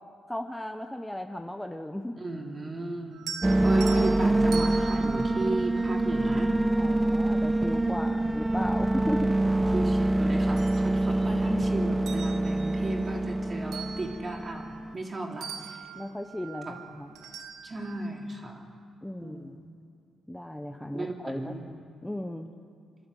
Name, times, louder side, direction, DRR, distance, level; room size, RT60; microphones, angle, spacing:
voice 1, 0.3-2.2 6.8-9.3 15.9-17.1 19.0-19.6 20.3-21.6 22.0-22.5, left 1 dB, 5° left, 5 dB, 1.0 m, -36 dB
voice 2, 2.2-3.2 3.6-6.6 9.7-15.8 17.6-18.7 19.2-19.6 20.9-21.6, right 2 dB, 30° right, 1 dB, 3.6 m, -35 dB
sound 1, 3.1-6.5 8.1-8.2 8.7-10.0 10.3-11.6 11.9-15.1 15.4-18.1, right 7 dB, 75° right, 1.5 m, -43 dB
sound 2, 3.4-14.9, right 2 dB, 10° right, 0.4 m, -25 dB
28.0 x 12.5 x 8.2 m, 2.3 s
cardioid pair, 95°, 0 cm